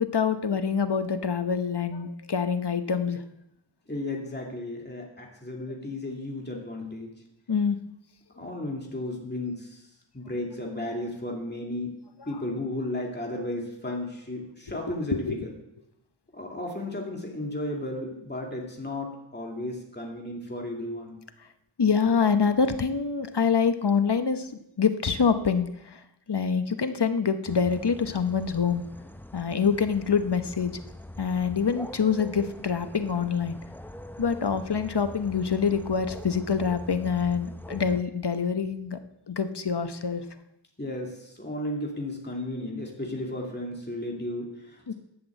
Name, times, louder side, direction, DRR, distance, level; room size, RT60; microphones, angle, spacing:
voice 1, 0.0-3.2 7.5-7.8 15.1-15.4 21.8-24.5 24.8-26.0 26.3-28.8 29.3-30.7 31.2-33.6 34.2-39.0 39.3-40.2 44.9-45.0, left 6 dB, 55° left, 9 dB, 1.0 m, -25 dB
voice 2, 3.9-7.1 8.4-11.9 12.3-15.5 16.3-21.2 40.8-44.9, left 1 dB, 20° left, -1 dB, 2.3 m, -34 dB
sound 1, 27.5-38.0, left 1 dB, 5° left, 0.6 m, -43 dB
11.0 x 6.0 x 8.2 m, 0.82 s
wide cardioid pair, 45°, 47 cm